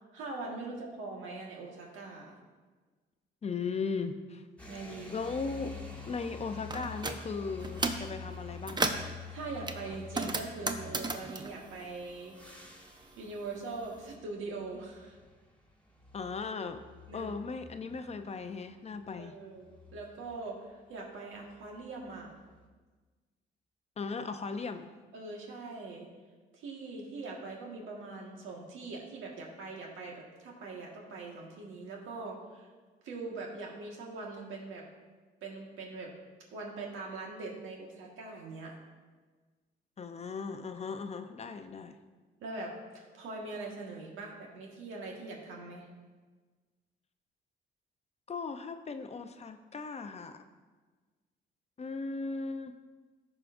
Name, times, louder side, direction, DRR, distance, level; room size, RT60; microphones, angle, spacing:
voice 1, 0.1-2.3 4.6-5.1 9.3-12.3 13.2-15.2 17.1-17.3 19.2-22.3 25.1-26.1 26.5-32.7 33.0-34.9 35.4-36.1 36.5-38.8 42.4-45.9, right 3 dB, 85° right, -1 dB, 1.6 m, -42 dB
voice 2, 3.4-4.4 5.1-5.7 6.1-8.9 16.1-16.8 17.1-19.3 24.0-24.9 40.0-41.9 48.3-50.4 51.8-52.7, left 4 dB, 35° left, 8 dB, 0.5 m, -37 dB
sound 1, 4.6-20.6 21.4-22.7, left 4 dB, 5° left, 1.4 m, -49 dB
sound 2, 6.7-7.2 7.6-8.1 8.5-9.1 9.7-12.6 12.9-14.0, right 3 dB, 20° right, 0.6 m, -34 dB
14.5 x 4.9 x 2.6 m, 1.4 s
cardioid pair, 90°, 20 cm